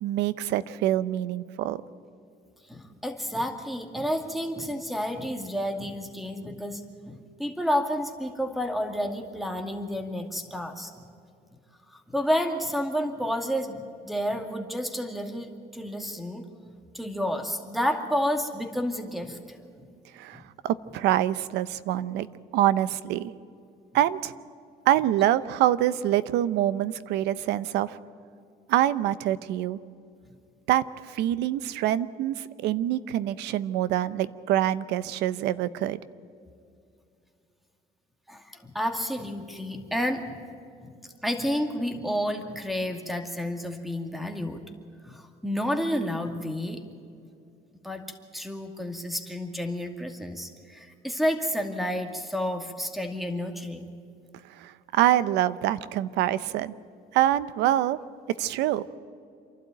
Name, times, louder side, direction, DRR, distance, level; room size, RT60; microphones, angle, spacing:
voice 1, 0.0-1.8 20.1-22.3 22.5-23.3 23.9-24.3 24.9-28.0 28.7-29.8 30.7-36.0 54.6-56.7 57.1-58.0 58.4-58.8, right 13 dB, 85° right, 16 dB, 0.8 m, -25 dB
voice 2, 2.7-11.0 11.9-16.4 16.9-19.4 19.8-19.9 20.3-20.4 38.3-40.4 40.8-40.9 41.2-44.6 45.0-46.8 47.8-48.0 48.3-53.9, equal, ahead, 5 dB, 2.4 m, -30 dB
28.0 x 12.0 x 8.9 m, 2.5 s
cardioid pair, 110°, 17 cm